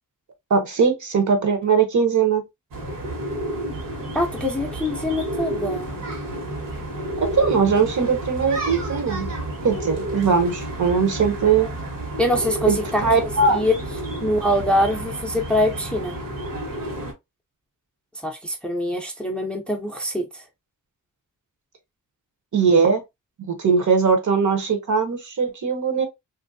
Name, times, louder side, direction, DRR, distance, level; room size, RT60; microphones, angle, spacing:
voice 1, 0.5-2.4 7.3-9.3 9.6-11.7 12.7-13.6 22.5-23.0 23.4-26.0, right 5 dB, 60° right, 0.9 m, -20 dB
sound 1, 2.7-17.1, right 1 dB, 80° right, 1.3 m, -31 dB
voice 2, 4.1-6.0 12.2-13.0 13.5-13.7 14.2-16.1 18.2-20.4, left 1 dB, 5° left, 0.5 m, -24 dB
3.0 x 2.6 x 2.5 m
wide cardioid pair, 150°, 33 cm